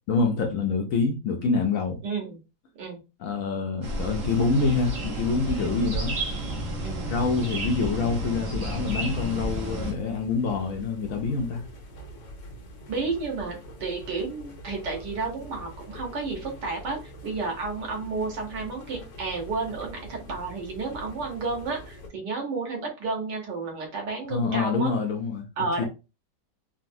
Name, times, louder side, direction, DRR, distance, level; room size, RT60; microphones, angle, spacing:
voice 1, 0.1-2.0 3.2-6.1 7.1-11.6 24.3-25.5 25.8-25.9, left 4 dB, 70° left, 0.8 m, -26 dB
voice 2, 2.0-2.4 2.8-3.0 5.6-5.9 6.8-7.1 12.9-24.9 25.6-25.8, right 4 dB, 85° right, 1.6 m, -32 dB
sound 1, 3.8-9.9, right 1 dB, 55° right, 1.2 m, -31 dB
sound 2, 8.9-22.1, equal, 90° left, 1.4 m, -44 dB
3.9 x 2.0 x 2.5 m
omnidirectional pair, 1.8 m